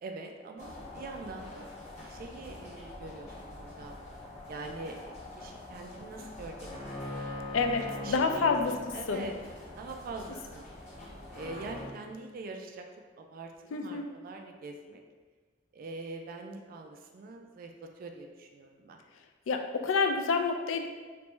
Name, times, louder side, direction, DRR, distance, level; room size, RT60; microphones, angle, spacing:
voice 1, 0.0-1.7 2.1-4.0 4.5-7.2 8.0-8.5 8.9-9.3 9.8-10.7 11.3-12.8 13.2-15.0 15.7-19.0, right 3 dB, 45° right, 3 dB, 0.3 m, -44 dB
sound 1, 0.6-11.9, left 1 dB, 35° left, 1.2 m, -43 dB
voice 2, 7.5-8.7 9.1-9.3 13.7-14.1 19.5-20.9, left 4 dB, 90° left, 5 dB, 0.4 m, -28 dB
3.3 x 3.0 x 3.1 m, 1.4 s
head